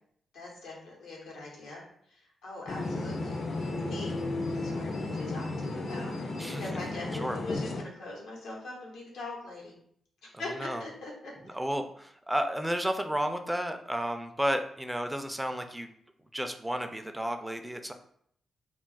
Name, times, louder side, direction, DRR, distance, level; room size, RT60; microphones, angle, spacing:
voice 1, 0.3-1.8 2.1-4.1 4.5-9.7 10.4-11.3, left 2 dB, 90° left, -3 dB, 1.0 m, -42 dB
sound 1, 2.7-7.8, left 2 dB, 50° left, 0.5 m, -34 dB
voice 2, 6.4-6.7 7.2-7.4 10.4-10.8 11.4-15.9 16.3-17.9, equal, 10° right, 7 dB, 0.3 m, -32 dB
2.4 x 2.0 x 3.8 m, 0.65 s
cardioid pair, 75°, 0 cm